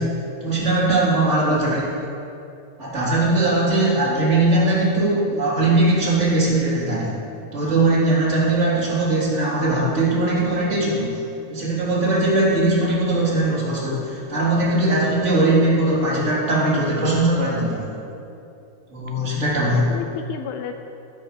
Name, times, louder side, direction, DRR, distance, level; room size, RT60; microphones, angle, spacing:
voice 1, 0.0-1.9 2.8-7.2 7.5-11.2 11.5-17.9 18.9-19.9, right 2 dB, 20° right, -7 dB, 3.1 m, -20 dB
voice 2, 3.7-4.7 5.2-5.4 19.4-20.8, left 8 dB, 80° left, 6 dB, 2.2 m, -34 dB
12.5 x 11.5 x 5.2 m, 2.7 s
omnidirectional pair, 4.7 m